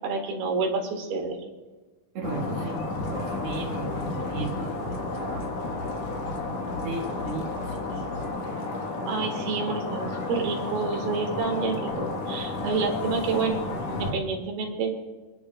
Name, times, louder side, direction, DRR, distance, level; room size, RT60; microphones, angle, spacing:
voice 1, 0.0-1.4 9.1-15.0, right 4 dB, 85° right, 1 dB, 3.6 m, -29 dB
voice 2, 2.1-4.8 5.1-5.5 6.8-8.1, right 3 dB, 50° right, -3 dB, 2.1 m, -36 dB
sound 1, 2.2-14.1, left 2 dB, 55° left, 2.1 m, -32 dB
sound 2, 2.9-8.3, left 2 dB, 80° left, 1.3 m, -41 dB
27.0 x 10.5 x 2.3 m, 1.3 s
omnidirectional pair, 4.3 m